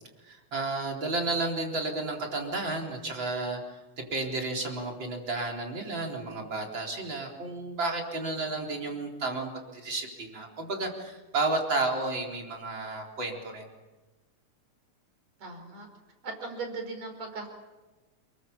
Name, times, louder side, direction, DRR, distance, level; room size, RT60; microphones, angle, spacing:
voice 1, 0.2-13.7, right 2 dB, 35° right, 1 dB, 4.6 m, -32 dB
voice 2, 15.4-15.9 16.2-17.5, right 3 dB, 60° right, 5 dB, 6.2 m, -38 dB
29.0 x 22.5 x 7.2 m, 1.2 s
omnidirectional pair, 3.5 m